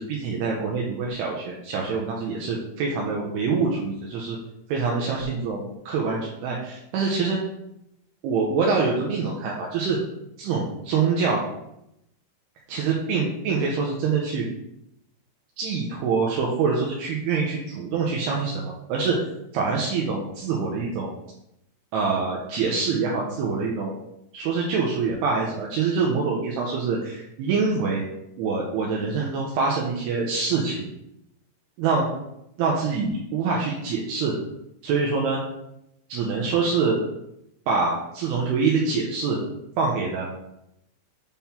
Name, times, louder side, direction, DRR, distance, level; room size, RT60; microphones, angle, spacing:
voice 1, 0.0-4.4 4.7-7.4 8.2-10.0 10.4-11.4 12.7-14.5 15.6-19.2 19.5-21.1 21.9-23.9 24.3-28.1 28.4-30.9 31.8-32.1 32.6-34.3 34.8-35.4 36.1-37.0 37.7-39.4 39.8-40.3, right 4 dB, 80° right, -2 dB, 2.4 m, -25 dB
7.2 x 3.8 x 4.3 m, 0.82 s
omnidirectional pair, 5.5 m